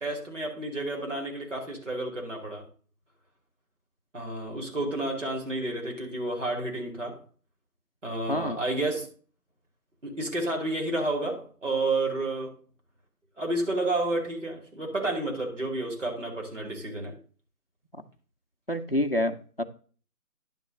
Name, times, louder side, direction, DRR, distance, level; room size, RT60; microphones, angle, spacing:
voice 1, 0.0-2.6 4.1-7.2 8.0-9.1 10.0-12.6 13.4-17.1, right 2 dB, 50° right, 1 dB, 2.7 m, -30 dB
voice 2, 8.3-8.6 18.0-18.1 18.7-19.6, left 1 dB, 40° left, 7 dB, 0.6 m, -28 dB
10.5 x 3.6 x 6.3 m, 0.41 s
figure-of-eight pair, 175°, 46 cm